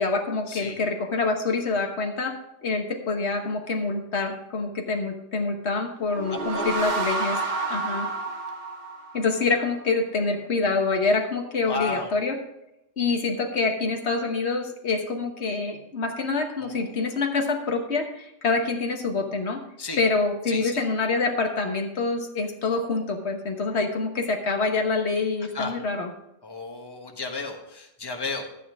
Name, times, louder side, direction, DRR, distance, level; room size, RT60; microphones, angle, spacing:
voice 1, 0.0-2.3 2.6-7.4 7.7-8.1 9.1-12.4 13.0-19.6 20.0-26.1, left 3 dB, 75° left, 3 dB, 1.5 m, -26 dB
sound 1, 6.0-9.5, right 3 dB, 55° right, 1.9 m, -29 dB
voice 2, 6.3-6.9 11.6-12.3 16.6-16.9 19.8-20.0 20.5-20.8 25.4-25.7 26.4-28.5, left 3 dB, 20° left, 2 dB, 1.3 m, -34 dB
12.5 x 9.2 x 3.6 m, 0.85 s
omnidirectional pair, 1.1 m